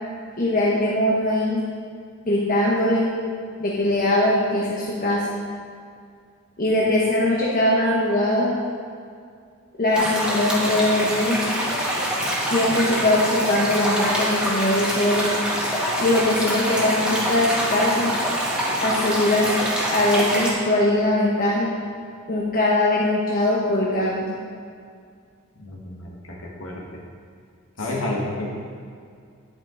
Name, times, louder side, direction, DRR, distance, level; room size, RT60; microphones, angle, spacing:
voice 1, 0.4-1.7 2.3-3.1 3.6-5.3 6.6-8.5 9.8-11.5 12.5-15.3 16.0-18.1 18.8-19.6 19.9-21.8 22.3-24.3 27.9-28.0, left 1 dB, 40° left, -5 dB, 1.1 m, -21 dB
sound 1, 9.9-20.5, equal, 5° right, 1.6 m, -25 dB
voice 2, 25.6-26.1 26.4-26.8 27.8-28.5, left 1 dB, 70° left, -3 dB, 1.5 m, -30 dB
9.2 x 8.9 x 3.8 m, 2.2 s
head